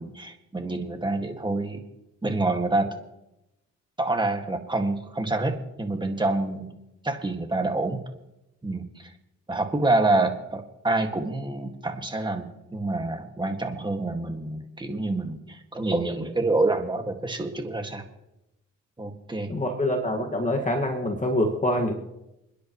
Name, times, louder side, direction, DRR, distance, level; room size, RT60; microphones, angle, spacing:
voice 1, 0.0-1.8 2.2-3.0 4.0-6.7 7.0-8.0 8.6-9.1 9.5-18.0 19.0-19.5, right 2 dB, 15° right, 5 dB, 2.0 m, -27 dB
voice 2, 19.5-21.9, left 1 dB, 25° left, 2 dB, 1.9 m, -25 dB
29.0 x 10.5 x 3.1 m, 0.90 s
cardioid pair, 90°, 30 cm